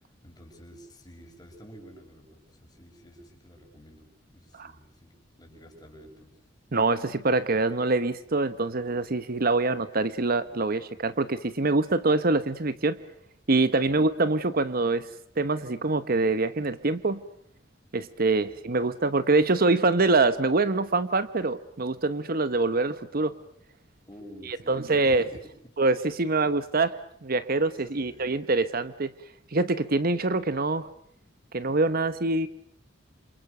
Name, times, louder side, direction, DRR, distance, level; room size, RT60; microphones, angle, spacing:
voice 1, 0.2-6.4 18.4-18.6 24.1-25.7 27.9-28.3, equal, 20° left, 1 dB, 6.7 m, -50 dB
voice 2, 6.7-13.0 13.5-15.1 15.4-17.2 17.9-23.3 24.5-25.2 25.8-29.1 29.5-30.9 31.5-32.5, right 3 dB, 50° right, 13 dB, 1.1 m, -25 dB
28.5 x 27.5 x 6.8 m, 0.65 s
head